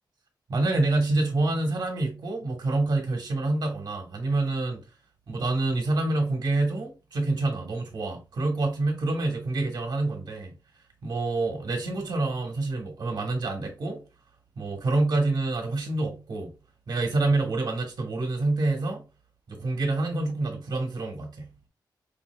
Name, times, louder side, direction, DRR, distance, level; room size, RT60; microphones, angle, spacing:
voice 1, 0.5-4.8 5.3-10.5 11.0-14.0 14.6-16.5 16.9-19.0 19.5-21.5, right 2 dB, 65° right, 1.3 m, -27 dB
5.0 x 2.8 x 2.3 m
wide cardioid pair, 150°, 8 cm